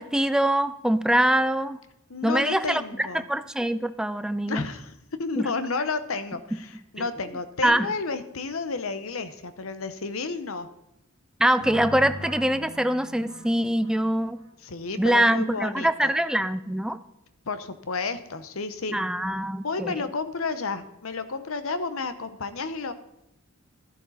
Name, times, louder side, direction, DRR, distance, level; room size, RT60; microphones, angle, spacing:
voice 1, 0.0-1.8 2.2-4.6 5.4-5.5 7.6-7.9 11.4-14.4 15.0-17.0 18.9-20.0, right 1 dB, 5° right, 12 dB, 0.4 m, -24 dB
voice 2, 2.1-3.2 4.5-4.9 5.2-10.7 14.6-16.1 17.5-19.0 19.6-22.9, left 4 dB, 70° left, 11 dB, 0.9 m, -31 dB
sound 1, 11.6-14.5, equal, 85° right, 1.6 m, -40 dB
12.0 x 11.0 x 4.2 m, 0.86 s
head